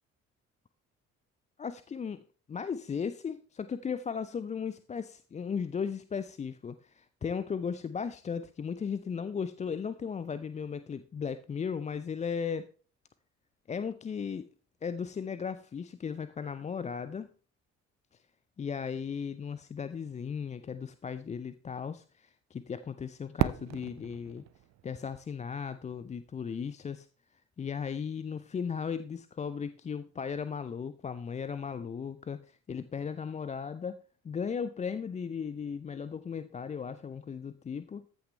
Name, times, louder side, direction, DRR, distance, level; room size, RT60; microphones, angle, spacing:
voice 1, 1.6-2.2 2.5-12.7 13.7-14.5 14.8-17.3 18.6-24.4 24.8-27.1 27.6-38.0, left 6 dB, 20° left, 14 dB, 0.4 m, -36 dB
Fireworks, 23.4-26.3, right 13 dB, 45° right, 0.6 m, -35 dB
14.0 x 6.2 x 3.3 m, 0.39 s
figure-of-eight pair, 45°, 38 cm